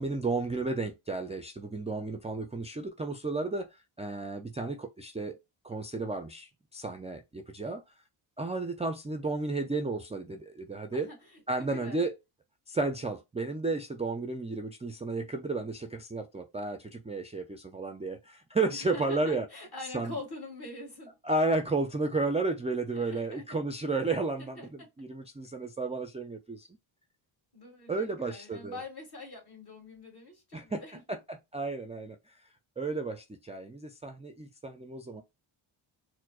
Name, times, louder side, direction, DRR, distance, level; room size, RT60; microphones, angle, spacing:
voice 1, 0.0-5.4 5.6-7.8 8.4-11.1 11.5-12.1 12.7-19.5 19.9-20.1 21.2-26.7 27.9-28.8 30.5-30.8 31.1-32.4 32.8-35.2, right 3 dB, 15° right, 0.3 m, -33 dB
voice 2, 10.9-12.0 18.7-21.2 22.9-23.6 24.4-24.9 27.5-31.0, left 2 dB, 50° left, 1.9 m, -44 dB
4.5 x 2.1 x 2.3 m
cardioid pair, 75°, 49 cm